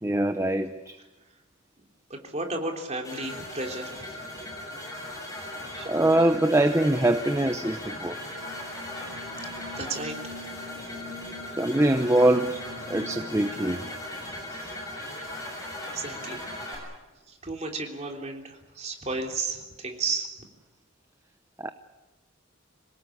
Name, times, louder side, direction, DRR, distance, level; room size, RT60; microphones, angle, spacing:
voice 1, 0.0-1.0 5.9-8.2 11.6-12.6 12.9-13.8 21.6-21.7, right 1 dB, 15° right, 8 dB, 0.7 m, -23 dB
voice 2, 2.1-4.2 5.7-5.9 9.8-10.4 12.9-13.0 14.5-14.7 15.0-15.4 15.9-16.9 17.3-20.3, right 3 dB, 30° right, 2 dB, 3.4 m, -34 dB
sound 1, 3.0-16.8, left 1 dB, 15° left, 7.4 m, -38 dB
sound 2, 7.8-13.9, left 2 dB, 85° right, 5.6 m, -44 dB
26.5 x 18.5 x 8.6 m, 1.1 s
head